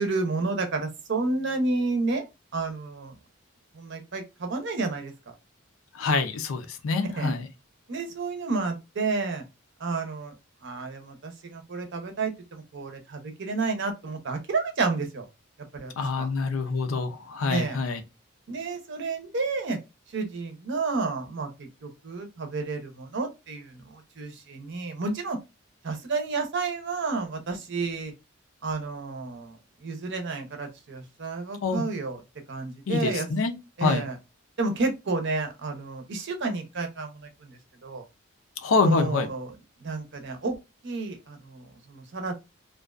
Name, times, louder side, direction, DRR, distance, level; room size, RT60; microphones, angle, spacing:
voice 1, 0.0-2.2 2.5-3.1 3.7-5.1 7.1-7.3 7.9-9.4 9.8-10.3 10.6-15.2 15.7-15.9 16.2-16.3 17.5-17.8 18.5-19.8 20.1-25.4 25.8-28.1 28.6-32.2 32.5-33.3 33.8-34.2 34.6-38.0 38.8-39.5 39.8-40.6 40.8-42.3, right 3 dB, 60° right, 0.6 m, -31 dB
voice 2, 5.9-7.5 16.0-18.0 31.6-31.9 32.9-33.5 33.8-34.0 38.6-39.3, left 3 dB, 80° left, 0.5 m, -26 dB
2.4 x 2.2 x 2.3 m
head